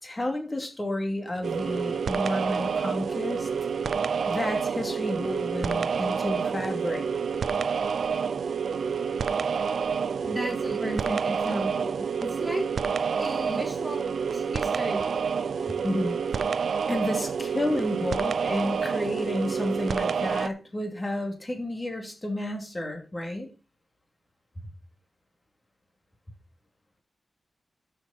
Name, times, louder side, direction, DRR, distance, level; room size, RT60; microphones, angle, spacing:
voice 1, 0.0-3.5 4.3-7.0 10.6-10.8 13.5-13.7 15.8-16.4 16.9-23.5 24.6-24.7, left 1 dB, 20° left, 3 dB, 2.7 m, -31 dB
sound 1, 1.4-20.5, right 6 dB, 75° right, 0.5 m, -28 dB
voice 2, 10.2-12.7 13.2-15.1, right 1 dB, 5° right, -1 dB, 4.3 m, -34 dB
13.0 x 6.6 x 4.3 m, 0.32 s
wide cardioid pair, 125°, 0 cm